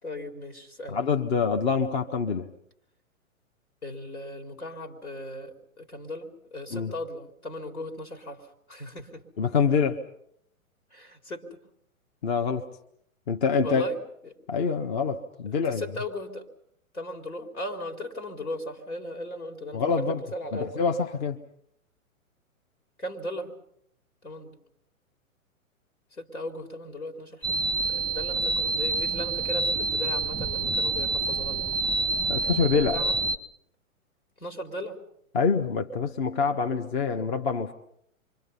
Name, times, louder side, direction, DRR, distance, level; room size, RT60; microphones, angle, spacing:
voice 1, 0.0-1.0 3.8-9.3 10.9-11.6 13.6-14.0 14.2-14.3 15.5-16.5 16.9-20.8 23.0-23.6 24.2-24.6 26.1-27.6 27.9-31.7 32.7-33.2 34.4-35.0, left 1 dB, 80° left, 5 dB, 4.1 m, -37 dB
voice 2, 0.9-2.5 6.7-6.9 9.4-10.0 12.2-12.6 13.3-13.9 14.5-15.8 19.7-20.2 20.5-21.4 32.3-33.0 35.3-37.7, left 5 dB, 45° left, 5 dB, 1.4 m, -25 dB
sound 1, 27.4-33.4, right 3 dB, 5° left, 0.9 m, -27 dB
29.0 x 25.0 x 5.6 m, 0.71 s
figure-of-eight pair, 115°, 42 cm